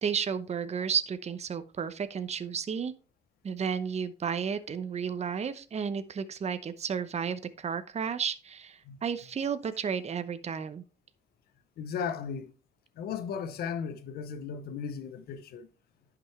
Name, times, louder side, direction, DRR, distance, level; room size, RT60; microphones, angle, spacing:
voice 1, 0.0-2.9 3.4-10.8, right 7 dB, 45° right, 0.8 m, -32 dB
voice 2, 11.8-12.5 13.0-15.7, left 6 dB, 80° left, 0.9 m, -36 dB
10.0 x 6.1 x 3.3 m
cardioid pair, 75°, 16 cm